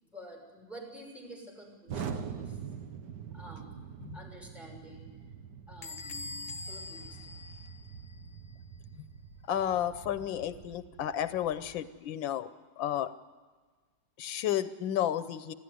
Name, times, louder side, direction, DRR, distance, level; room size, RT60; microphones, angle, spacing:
voice 1, 0.0-2.6 3.3-3.9 4.1-5.2 5.7-7.3, equal, ahead, -1 dB, 5.9 m, -49 dB
Explosion, 1.9-11.8, right 6 dB, 65° right, 1.8 m, -44 dB
Bell / Squeak, 5.8-8.3, left 4 dB, 40° left, 1.0 m, -43 dB
voice 2, 9.5-12.5 12.8-13.1 14.2-15.5, left 10 dB, 85° left, 12 dB, 1.6 m, -32 dB
25.0 x 15.0 x 9.5 m, 1.4 s
omnidirectional pair, 2.0 m